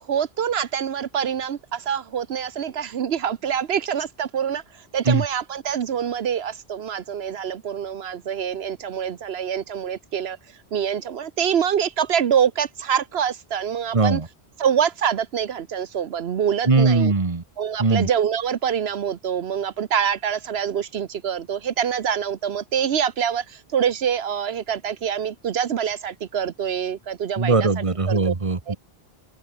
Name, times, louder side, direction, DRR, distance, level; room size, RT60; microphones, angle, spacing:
voice 1, 0.0-10.4 10.7-14.2 14.6-17.1 17.6-28.3 28.7-28.8, right 8 dB, 80° right, 1.1 m, -25 dB
voice 2, 13.9-14.2 16.7-17.4 17.8-18.1 27.4-28.8, right 3 dB, 30° right, 1.5 m, -20 dB
open air
omnidirectional pair, 1.0 m